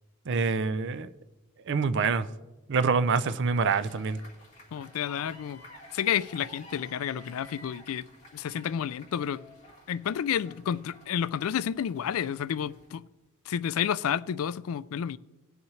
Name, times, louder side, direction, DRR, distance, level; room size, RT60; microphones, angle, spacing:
voice 1, 0.3-1.1 1.7-2.3 2.7-4.2, right 5 dB, 55° right, 0.5 m, -26 dB
sound 1, 3.5-12.9, left 1 dB, 30° left, 3.3 m, -52 dB
voice 2, 4.7-5.6 5.9-8.1 8.3-9.4 9.9-13.1 13.5-15.2, left 8 dB, 70° left, 0.3 m, -30 dB
18.5 x 7.2 x 3.2 m
head